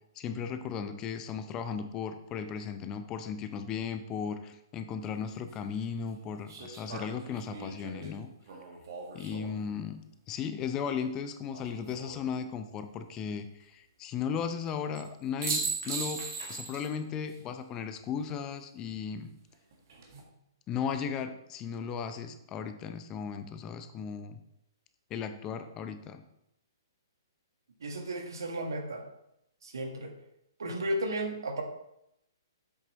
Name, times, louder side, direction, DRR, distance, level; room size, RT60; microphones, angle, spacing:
voice 1, 0.2-8.3 9.1-10.0 10.3-19.3 20.7-24.4 25.1-26.2, left 7 dB, 25° left, 9 dB, 0.6 m, -36 dB
sound 1, 5.0-5.1 6.5-9.7 11.5-12.2 15.0-15.1 15.4-17.0 17.3-17.4 19.7-20.2, right 4 dB, 55° right, 1.7 m, -38 dB
voice 2, 27.8-29.0 29.6-30.1 30.6-31.6, right 1 dB, 70° right, 3 dB, 1.4 m, -34 dB
7.9 x 6.0 x 3.1 m, 0.80 s
figure-of-eight pair, 125°, 2 cm